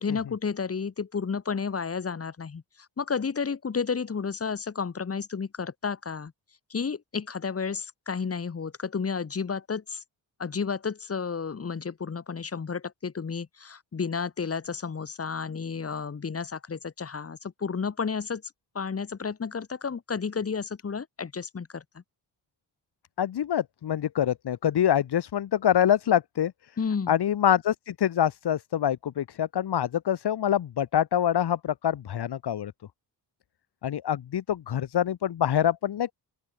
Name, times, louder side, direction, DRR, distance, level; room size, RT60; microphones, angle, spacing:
voice 1, 0.0-2.6 3.0-6.3 6.7-10.0 10.4-18.4 18.7-22.0 26.8-27.1, left 5 dB, 35° left, 3.6 m, -32 dB
voice 2, 23.2-26.5 27.1-32.7 33.8-36.1, left 10 dB, 75° left, 2.8 m, -25 dB
open air
wide cardioid pair, 150°, 40 cm